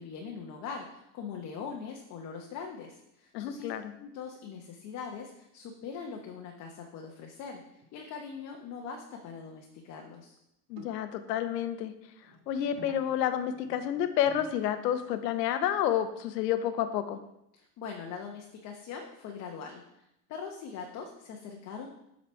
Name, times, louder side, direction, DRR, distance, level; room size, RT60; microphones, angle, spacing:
voice 1, 0.0-3.7 4.0-10.3 17.5-21.9, left 6 dB, 35° left, 1 dB, 0.9 m, -42 dB
voice 2, 3.3-3.9 10.7-11.9 12.5-17.2, left 10 dB, 80° left, 9 dB, 0.9 m, -29 dB
sound 1, 7.8-8.0 8.3-8.4 9.2-9.3 9.6-9.7 10.8-10.9 12.2-15.2 17.2-17.3, equal, 45° right, 1.4 m, -53 dB
7.8 x 4.1 x 4.5 m, 0.82 s
supercardioid pair, 130°, 49 cm